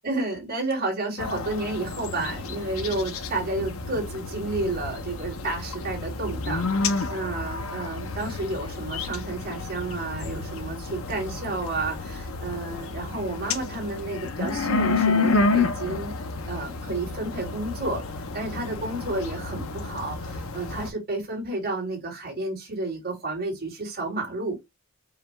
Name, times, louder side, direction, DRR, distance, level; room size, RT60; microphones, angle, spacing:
voice 1, 0.0-16.1 16.5-24.6, right 2 dB, 45° right, 2.2 m, -31 dB
sound 1, 1.2-20.9, left 3 dB, 75° left, 0.7 m, -30 dB
4.8 x 2.3 x 3.3 m
head